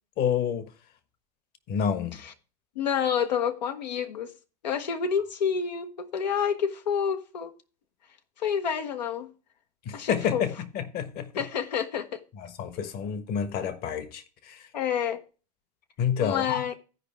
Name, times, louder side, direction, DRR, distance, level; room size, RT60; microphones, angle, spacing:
voice 1, 0.2-0.7 1.7-2.2 9.8-11.4 12.4-14.6 16.0-16.6, left 8 dB, 50° left, 1.3 m, -29 dB
voice 2, 2.8-4.3 4.6-7.5 8.4-9.3 9.9-10.5 11.4-12.2 14.7-15.2 16.2-16.7, left 7 dB, 80° left, 1.0 m, -28 dB
15.0 x 5.0 x 3.4 m
hypercardioid pair, 85°, 21 cm